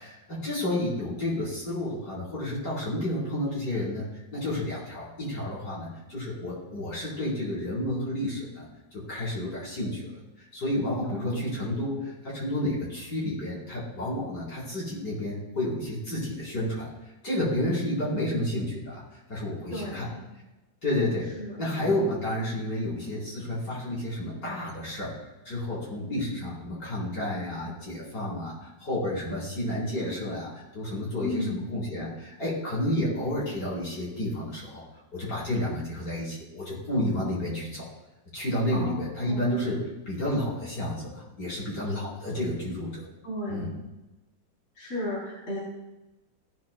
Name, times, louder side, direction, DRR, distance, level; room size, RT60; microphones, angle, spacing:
voice 1, 0.0-10.0 10.5-16.9 17.2-19.0 19.3-20.1 20.8-21.3 21.6-34.8 35.1-37.9 38.3-43.0 43.5-43.7, left 1 dB, 60° left, -6 dB, 5.1 m, -31 dB
voice 2, 11.0-11.6 19.7-20.2 21.4-21.6 31.2-31.7 38.7-39.5 43.2-43.8 44.8-45.6, left 1 dB, 35° left, -6 dB, 3.6 m, -34 dB
16.5 x 9.9 x 2.3 m, 1.0 s
omnidirectional pair, 2.0 m